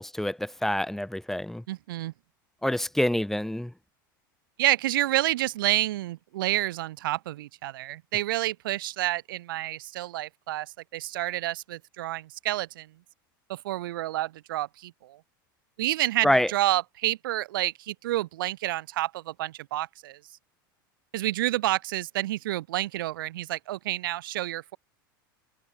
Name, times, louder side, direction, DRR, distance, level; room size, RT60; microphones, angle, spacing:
voice 1, 0.0-1.6 2.6-3.7 16.2-16.5, left 1 dB, 5° left, 1.8 m, -26 dB
voice 2, 1.7-2.1 4.6-12.9 13.5-15.2 15.8-20.2 21.1-24.8, right 15 dB, 75° right, 7.6 m, -29 dB
hypercardioid pair, 95°, 11 cm